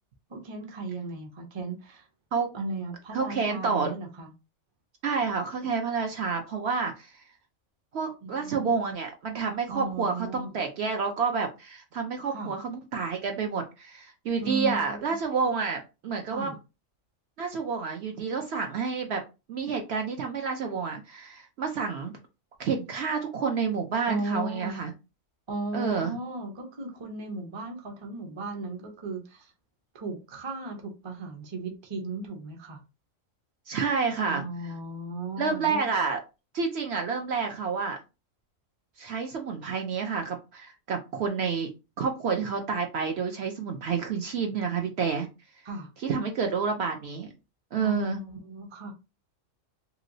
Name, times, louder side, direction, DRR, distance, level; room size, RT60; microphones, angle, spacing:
voice 1, 0.3-2.1 2.5-4.3 8.2-8.7 9.7-10.5 12.3-12.5 14.4-15.0 16.3-16.5 24.1-24.8 25.5-29.5 29.9-32.8 34.2-35.9 45.6-45.9 47.8-48.9, right 2 dB, 30° right, 0.5 m, -36 dB
voice 2, 3.1-3.9 5.0-7.2 7.9-16.6 17.4-19.2 19.5-22.1 22.6-24.9 25.7-26.2 33.7-34.4 35.4-36.2 36.5-38.0 39.0-41.7 42.0-45.3 46.0-47.3 47.7-48.2, right 5 dB, 65° right, 0.7 m, -29 dB
3.0 x 2.9 x 2.6 m
omnidirectional pair, 1.4 m